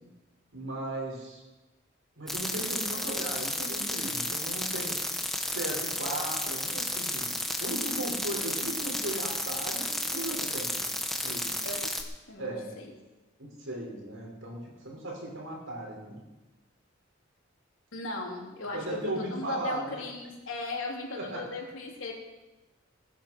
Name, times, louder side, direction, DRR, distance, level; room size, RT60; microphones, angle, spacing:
voice 1, 0.5-1.4 2.2-4.9 5.5-7.3 7.6-10.8 11.2-11.5 12.4-12.6 13.4-16.2 18.7-20.0 21.1-21.4, right 1 dB, 90° right, -2 dB, 5.8 m, -37 dB
sound 1, 2.3-12.0, left 1 dB, ahead, 1.3 m, -32 dB
voice 2, 17.9-22.1, left 2 dB, 85° left, -1 dB, 3.4 m, -37 dB
20.5 x 10.5 x 4.7 m, 1.1 s
head